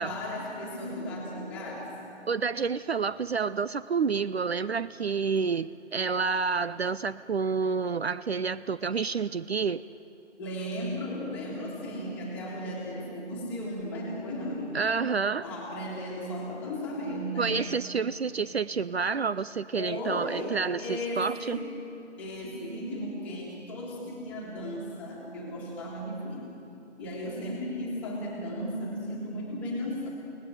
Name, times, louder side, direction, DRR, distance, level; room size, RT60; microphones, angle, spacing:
voice 1, 0.0-1.9 10.4-14.8 15.4-17.6 19.7-21.7 22.2-26.4 27.0-30.1, left 1 dB, 5° left, -5 dB, 1.8 m, -35 dB
voice 2, 2.3-9.8 14.7-15.5 17.4-21.6, right 5 dB, 60° right, 15 dB, 0.5 m, -29 dB
29.5 x 18.5 x 8.0 m, 3.0 s
figure-of-eight pair, 165°, 35 cm